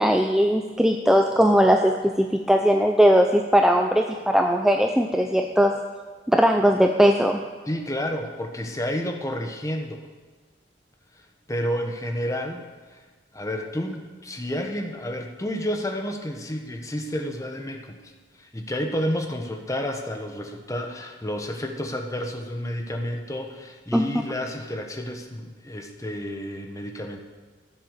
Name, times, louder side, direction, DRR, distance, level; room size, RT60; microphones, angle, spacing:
voice 1, 0.0-5.7 6.3-7.4 23.9-24.1, equal, 5° right, 3 dB, 0.5 m, -19 dB
voice 2, 7.7-10.1 11.5-12.6 13.3-18.0 18.4-27.2, equal, 20° left, 3 dB, 1.2 m, -30 dB
14.0 x 7.9 x 6.6 m, 1.4 s
head